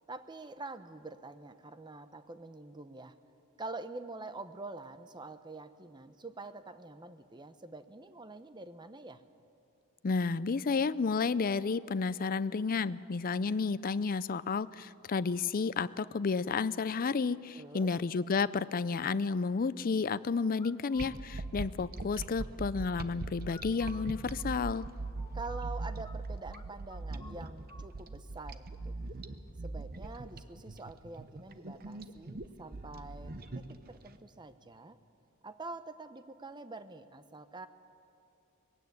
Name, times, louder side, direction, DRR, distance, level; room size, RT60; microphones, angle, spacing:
voice 1, 0.1-3.2 3.6-9.2 17.5-18.0 25.3-29.0 29.6-35.0 35.4-37.7, right 3 dB, 20° right, 11 dB, 0.7 m, -46 dB
voice 2, 10.0-24.8, left 4 dB, 40° left, 16 dB, 0.4 m, -31 dB
sound 1, 20.6-21.2 23.4-26.2 26.5-26.6 26.9-27.9, left 4 dB, 20° left, 0.9 m, -53 dB
sound 2, 21.0-34.1, right 3 dB, 45° right, 0.9 m, -41 dB
20.5 x 16.0 x 9.5 m, 2.8 s
head